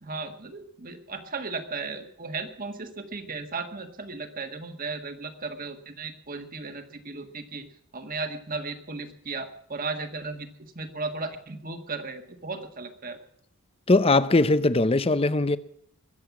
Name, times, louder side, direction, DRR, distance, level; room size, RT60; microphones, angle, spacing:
voice 1, 0.0-7.7 7.9-10.5 10.8-13.2, right 4 dB, 40° right, 1.6 m, -35 dB
voice 2, 13.9-15.6, left 2 dB, 25° left, 0.6 m, -20 dB
22.0 x 8.0 x 7.2 m
head